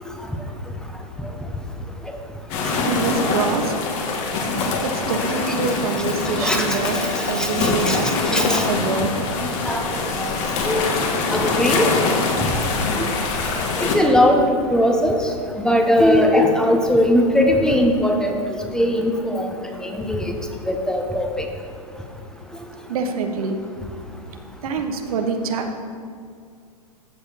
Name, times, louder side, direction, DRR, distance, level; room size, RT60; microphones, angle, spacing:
sound 1, 2.5-14.0, left 3 dB, 50° left, 1.9 m, -23 dB
voice 1, 2.8-3.7 4.8-7.0 7.2-9.1 22.9-23.6 24.6-25.8, right 4 dB, 65° right, 5 dB, 1.3 m, -25 dB
voice 2, 6.4-6.8 7.4-8.0 8.3-8.6 9.6-9.8 10.2-10.3 10.6-10.9 11.3-11.8 13.8-14.4 14.7-15.2 15.6-18.4 18.7-19.5 19.8-20.4 20.7-21.4, left 1 dB, 5° left, 2 dB, 1.1 m, -19 dB
14.5 x 5.0 x 5.8 m, 2.2 s
hypercardioid pair, 110°, 20 cm